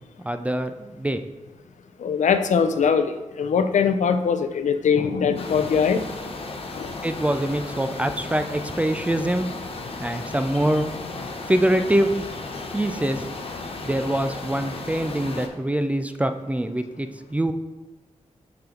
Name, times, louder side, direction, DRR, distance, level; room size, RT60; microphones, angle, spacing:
voice 1, 0.2-1.2 7.0-9.5 10.0-10.9 11.5-12.3 12.7-13.2 13.8-17.5, right 1 dB, 10° right, 9 dB, 0.3 m, -24 dB
voice 2, 2.0-6.0 6.8-6.9, left 6 dB, 80° left, 9 dB, 0.5 m, -21 dB
sound 1, 5.4-15.5, left 3 dB, 50° left, 0.7 m, -35 dB
5.7 x 5.2 x 3.8 m, 1.2 s
wide cardioid pair, 115°, 12 cm